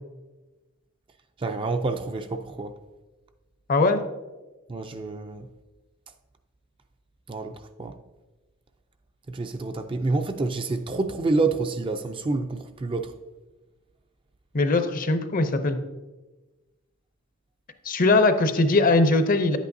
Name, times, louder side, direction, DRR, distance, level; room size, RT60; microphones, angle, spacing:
voice 1, 1.4-2.7 4.7-5.5 7.3-7.5 7.8-7.9 9.3-13.1, right 3 dB, 25° right, 0.4 m, -28 dB
voice 2, 3.7-4.0 14.5-15.8 17.8-19.6, left 2 dB, 40° left, 0.6 m, -20 dB
10.0 x 8.3 x 2.6 m
head